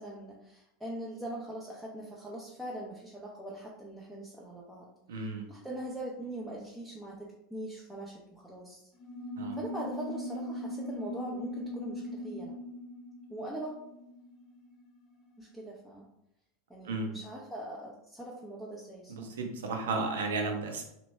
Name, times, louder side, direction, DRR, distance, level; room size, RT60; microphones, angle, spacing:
voice 1, 0.0-4.9 5.5-8.9 9.6-12.5 13.3-13.8 15.4-16.1 16.7-19.3, right 1 dB, ahead, -5 dB, 0.7 m, -42 dB
voice 2, 5.1-5.4 9.4-9.6 16.8-17.1 19.1-20.8, right 3 dB, 65° right, 3 dB, 0.7 m, -33 dB
sound 1, 8.9-14.9, equal, 30° left, 0.8 m, -40 dB
3.0 x 2.9 x 3.2 m, 0.83 s
figure-of-eight pair, 80°, 0 cm